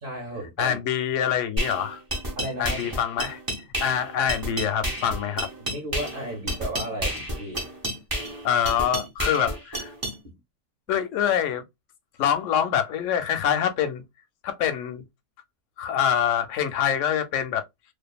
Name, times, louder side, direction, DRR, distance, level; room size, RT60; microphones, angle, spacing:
voice 1, 0.0-0.8 2.3-3.0 5.7-7.7 10.2-10.3, right 1 dB, 45° right, 0.8 m, -34 dB
voice 2, 0.6-2.0 2.6-3.4 3.8-5.5 8.4-9.9 10.9-11.6 12.2-14.0 14.4-15.0 15.8-17.6, left 9 dB, 65° left, 0.8 m, -25 dB
sound 1, 1.6-10.2, equal, 25° right, 0.4 m, -31 dB
2.6 x 2.3 x 2.2 m
omnidirectional pair, 1.7 m